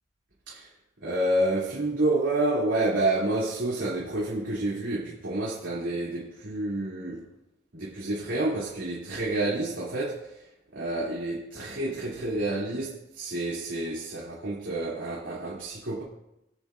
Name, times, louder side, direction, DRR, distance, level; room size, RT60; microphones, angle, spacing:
voice 1, 1.0-7.2 7.7-10.2 10.7-16.0, right 2 dB, 80° right, 2.7 m, -29 dB
23.0 x 8.5 x 2.5 m
head